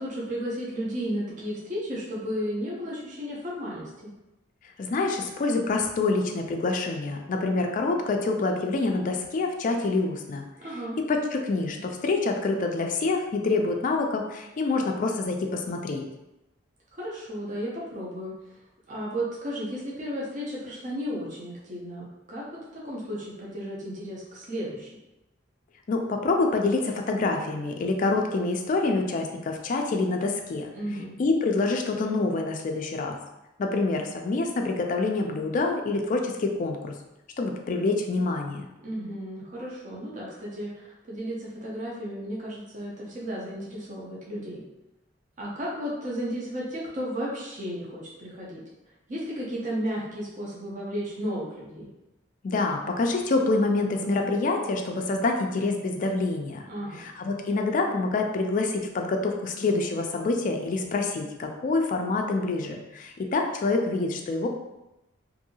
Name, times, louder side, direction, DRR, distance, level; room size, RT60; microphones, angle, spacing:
voice 1, 0.0-4.1 10.6-11.0 17.0-18.3 18.9-22.4 22.7-24.9 30.7-31.2 38.8-44.6 45.4-48.6 49.1-51.9 56.7-57.1, equal, 40° right, -5 dB, 0.6 m, -34 dB
voice 2, 4.8-10.4 11.0-16.1 25.9-30.7 31.2-33.2 33.6-36.9 37.4-38.7 52.4-56.7 56.9-64.5, left 3 dB, 40° left, 3 dB, 0.3 m, -26 dB
2.7 x 2.6 x 2.7 m, 0.96 s
head